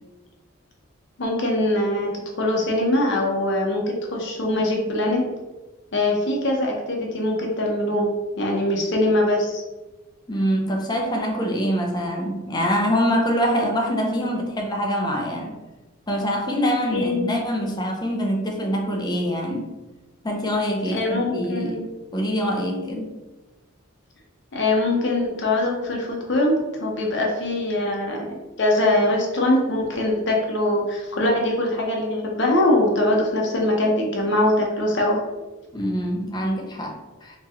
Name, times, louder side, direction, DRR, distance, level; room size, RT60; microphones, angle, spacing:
voice 1, 1.2-2.1 2.4-5.2 5.9-8.1 8.4-9.6 16.9-17.4 20.9-21.8 24.5-35.2, left 1 dB, 60° left, 0 dB, 0.8 m, -22 dB
voice 2, 10.3-15.6 16.1-19.7 20.2-21.8 22.1-23.2 35.7-37.4, equal, 20° left, 2 dB, 0.5 m, -24 dB
2.9 x 2.8 x 3.6 m, 1.1 s
head